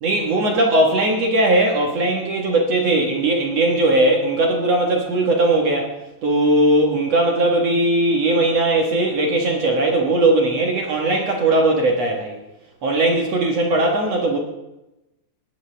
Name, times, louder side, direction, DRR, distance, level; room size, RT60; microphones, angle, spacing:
voice 1, 0.0-5.9 6.2-12.3 12.8-14.4, right 2 dB, 65° right, 0 dB, 1.6 m, -19 dB
18.5 x 12.5 x 3.4 m, 0.97 s
omnidirectional pair, 4.9 m